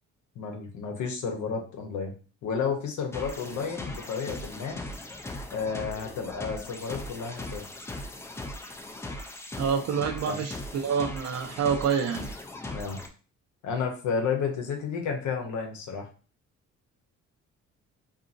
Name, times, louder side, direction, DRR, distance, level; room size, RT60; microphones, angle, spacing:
voice 1, 0.4-2.1 2.4-4.8 5.5-7.6 10.0-10.4 12.7-13.0 13.6-16.1, left 6 dB, 75° left, 3 dB, 0.8 m, -32 dB
sound 1, 3.1-13.1, left 1 dB, 10° left, 0.3 m, -39 dB
voice 2, 9.6-12.3, right 6 dB, 60° right, 5 dB, 0.5 m, -27 dB
2.7 x 2.5 x 2.5 m, 0.37 s
cardioid pair, 90°, 30 cm